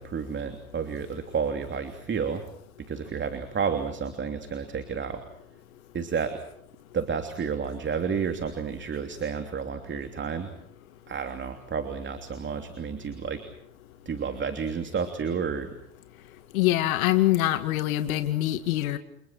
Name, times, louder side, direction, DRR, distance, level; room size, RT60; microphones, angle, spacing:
voice 1, 0.0-2.4 2.8-5.2 5.9-6.4 6.9-10.5 11.1-13.4 14.0-15.7, right 6 dB, 25° right, 7 dB, 3.1 m, -31 dB
voice 2, 16.5-19.0, left 15 dB, 70° left, 9 dB, 2.5 m, -24 dB
30.0 x 29.0 x 4.4 m, 0.71 s
hypercardioid pair, 95°, 43 cm